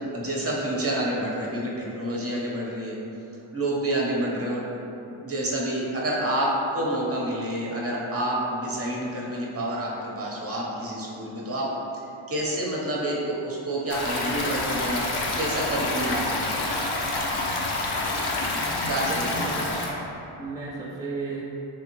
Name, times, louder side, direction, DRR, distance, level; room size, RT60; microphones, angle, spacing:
voice 1, 0.1-3.0 3.5-4.7 5.2-11.7 12.3-15.1 15.3-16.8 18.8-20.0, right 1 dB, 30° right, -4 dB, 0.9 m, -28 dB
Stream, 13.9-19.9, left 2 dB, 55° left, 0.7 m, -28 dB
voice 2, 18.5-19.8 20.4-21.4, right 2 dB, 10° right, -5 dB, 0.5 m, -34 dB
3.4 x 3.4 x 3.1 m, 2.9 s
cardioid pair, 65°, 48 cm